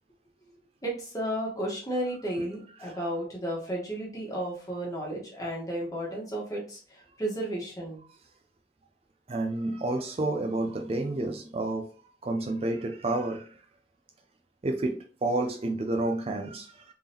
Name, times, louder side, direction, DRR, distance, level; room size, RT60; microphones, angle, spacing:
voice 1, 0.8-8.0, right 1 dB, 20° left, 1.3 m, -33 dB
voice 2, 9.3-13.6 14.6-16.9, right 2 dB, 35° right, 0.4 m, -30 dB
3.5 x 3.5 x 2.8 m
head